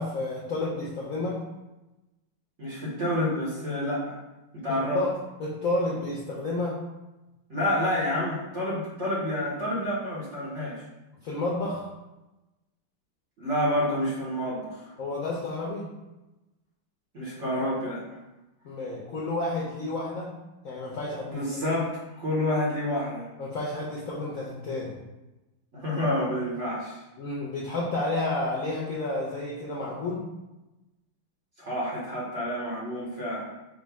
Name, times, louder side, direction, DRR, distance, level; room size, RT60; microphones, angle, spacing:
voice 1, 0.0-1.4 4.7-5.1 5.4-6.8 11.2-11.9 15.0-15.9 18.6-20.3 20.6-21.6 23.4-25.0 27.2-30.2, left 2 dB, 90° left, -3 dB, 0.7 m, -31 dB
voice 2, 2.6-4.2 4.5-5.0 7.5-10.8 13.4-14.9 17.1-18.0 21.3-23.3 25.7-27.0 31.6-33.5, left 1 dB, 45° right, -6 dB, 1.0 m, -28 dB
5.1 x 2.2 x 4.6 m, 1.0 s
omnidirectional pair, 2.3 m